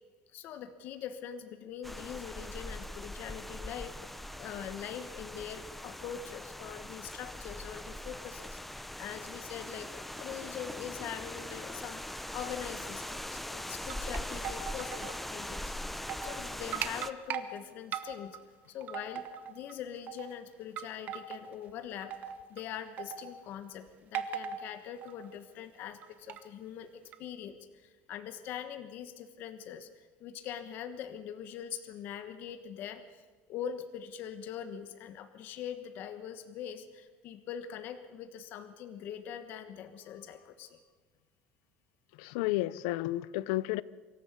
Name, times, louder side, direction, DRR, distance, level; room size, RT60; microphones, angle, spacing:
voice 1, 0.3-12.0 12.3-18.4 18.7-22.1 22.5-26.9 27.2-33.2 33.5-40.8, left 9 dB, 45° left, 10 dB, 1.3 m, -43 dB
sound 1, 1.8-17.1, left 1 dB, 5° left, 0.6 m, -41 dB
sound 2, 13.6-15.2 15.5-15.6 15.9-16.4 16.7-17.5 17.9-18.4 18.8-19.7 20.1-20.3 20.8-21.5 22.0-22.6 23.0-23.4 24.1-24.7 25.0-25.3 26.0-26.4 27.1-27.2, right 9 dB, 40° right, 1.1 m, -39 dB
voice 2, 42.2-43.8, left 17 dB, 90° left, 20 dB, 0.6 m, -31 dB
24.0 x 13.5 x 8.3 m, 1.3 s
cardioid pair, 165°, 4 cm